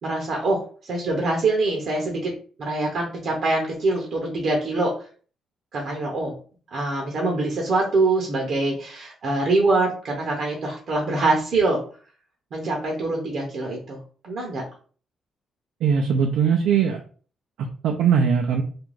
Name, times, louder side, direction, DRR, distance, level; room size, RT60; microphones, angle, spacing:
voice 1, 0.0-2.3 2.6-4.9 5.7-6.3 6.7-11.8 12.5-14.0 14.2-14.6, right 2 dB, 45° right, 0 dB, 0.6 m, -24 dB
voice 2, 15.8-17.0 17.8-18.6, right 7 dB, 90° right, 2 dB, 0.3 m, -20 dB
2.4 x 2.2 x 3.1 m, 0.41 s
cardioid pair, 160°, 0 cm